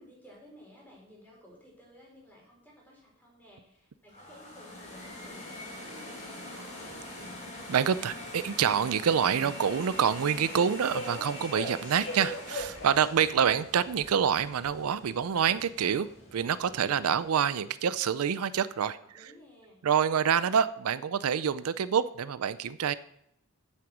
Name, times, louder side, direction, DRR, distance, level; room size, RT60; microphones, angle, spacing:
voice 1, 0.0-7.5 19.0-19.8, left 1 dB, 10° left, -4 dB, 4.3 m, -55 dB
sound 1, 4.1-15.1, left 1 dB, 35° left, 3.9 m, -44 dB
Subway metro underground, 6.8-17.3, left 1 dB, 55° left, 2.6 m, -44 dB
voice 2, 7.7-19.3 19.8-22.9, right 7 dB, 85° right, 16 dB, 0.4 m, -27 dB
8.8 x 7.7 x 6.1 m, 0.77 s
head